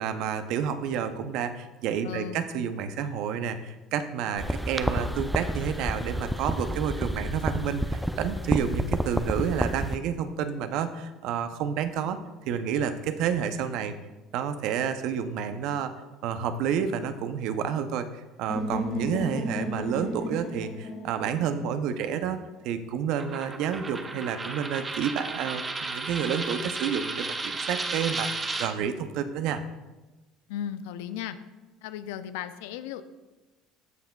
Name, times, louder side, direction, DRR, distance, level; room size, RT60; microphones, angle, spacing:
voice 1, 0.0-12.2 12.5-13.9 14.3-15.9 16.2-18.1 18.4-22.4 22.6-29.6, right 8 dB, 65° right, 10 dB, 0.6 m, -30 dB
voice 2, 2.0-2.4 30.5-31.4 31.8-33.0, left 10 dB, 75° left, 12 dB, 0.4 m, -35 dB
sound 1, 4.4-10.0, equal, ahead, 0.5 m, -30 dB
sound 2, 18.5-22.4, equal, 55° left, 2.5 m, -34 dB
Coin (dropping), 23.2-28.7, right 3 dB, 25° right, 0.9 m, -33 dB
14.0 x 5.6 x 2.3 m, 1.1 s
hypercardioid pair, 70°, 0 cm